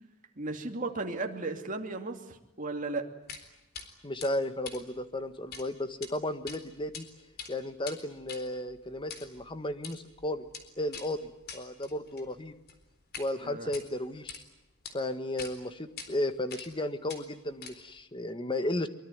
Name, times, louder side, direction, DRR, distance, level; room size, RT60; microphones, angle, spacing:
voice 1, 0.4-3.1 13.4-13.7, right 3 dB, 40° right, 4 dB, 2.7 m, -35 dB
sound 1, 3.3-3.4 3.7-3.9 4.2-5.6 5.9-6.1 6.5-7.0 7.3-13.3 13.6-14.4 14.8-14.9 15.4-15.5 16.0-16.1 16.5-16.8 17.1-18.0, left 6 dB, 50° left, 4.0 m, -45 dB
voice 2, 4.0-7.0 7.5-10.5 10.8-11.2 11.5-12.5 13.2-14.4 14.9-18.9, left 1 dB, 25° left, 10 dB, 1.5 m, -34 dB
24.0 x 24.0 x 9.5 m, 0.91 s
head